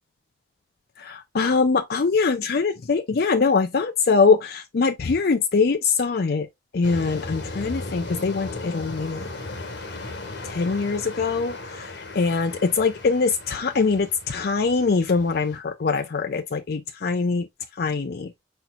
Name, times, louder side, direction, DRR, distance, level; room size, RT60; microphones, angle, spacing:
voice 1, 1.0-6.5 6.7-9.3 10.4-17.5 17.8-18.3, left 4 dB, 60° left, 0.5 m, -23 dB
sound 1, 6.8-15.6, left 2 dB, 75° left, 1.4 m, -37 dB
5.3 x 4.4 x 2.3 m
head